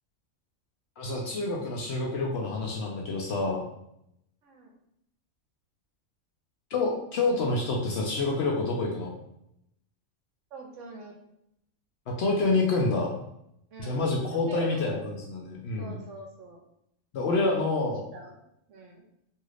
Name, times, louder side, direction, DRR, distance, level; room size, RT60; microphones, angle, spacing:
voice 1, 1.0-3.7 6.7-9.1 12.1-13.1 13.8-15.9 17.1-18.0, left 3 dB, 65° left, -1 dB, 0.7 m, -27 dB
voice 2, 10.5-11.1 13.7-14.9 15.8-16.6 17.8-18.4 18.7-19.0, right 2 dB, 70° right, 1 dB, 0.9 m, -44 dB
3.1 x 2.7 x 2.4 m, 0.77 s
omnidirectional pair, 1.4 m